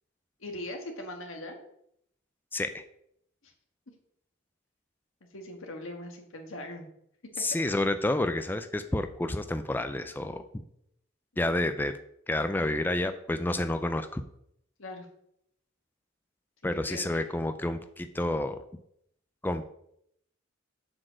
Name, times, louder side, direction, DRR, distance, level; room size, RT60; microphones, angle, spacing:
voice 1, 0.4-1.6 3.4-3.5 5.3-6.9 14.8-15.1 16.7-17.3, left 1 dB, 85° left, 3 dB, 1.6 m, -40 dB
voice 2, 2.5-2.8 7.4-10.6 11.4-12.0 12.3-14.2 16.6-18.6 19.4-19.7, left 1 dB, 10° left, 8 dB, 0.4 m, -29 dB
7.6 x 4.3 x 6.2 m, 0.73 s
head